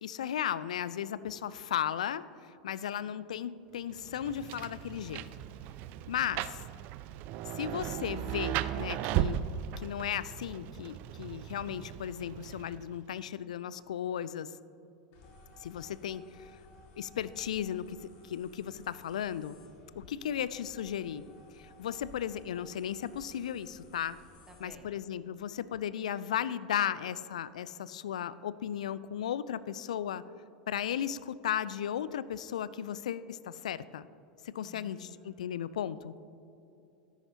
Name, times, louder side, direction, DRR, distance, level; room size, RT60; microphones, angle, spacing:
voice 1, 0.0-5.3 6.1-6.6 7.5-9.4 9.8-14.5 15.6-16.5 17.0-18.0 18.2-19.6 20.0-21.3 21.5-24.2 24.6-30.2 30.7-34.1 34.4-36.1, left 10 dB, 65° left, 17 dB, 0.3 m, -35 dB
voice 2, 2.8-3.1 24.5-24.9 34.6-35.5, equal, 15° right, 5 dB, 1.1 m, -55 dB
Rain, 4.0-13.0, right 11 dB, 45° right, 0.3 m, -37 dB
sound 1, 15.1-24.8, left 2 dB, 50° left, 1.9 m, -57 dB
13.0 x 10.5 x 2.8 m, 2.8 s
figure-of-eight pair, 80°, 4 cm